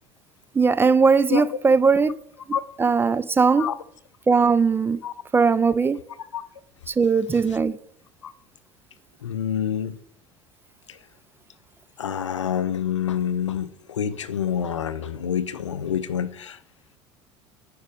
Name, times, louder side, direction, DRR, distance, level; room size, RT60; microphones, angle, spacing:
voice 1, 0.5-2.1 2.8-3.7 4.3-5.0 5.3-6.0 6.9-7.7, right 5 dB, 15° right, 0.3 m, -19 dB
voice 2, 9.2-9.9 12.0-13.7 14.0-16.3, left 9 dB, 80° left, 0.5 m, -26 dB
10.5 x 5.1 x 3.4 m
figure-of-eight pair, 70°, 15 cm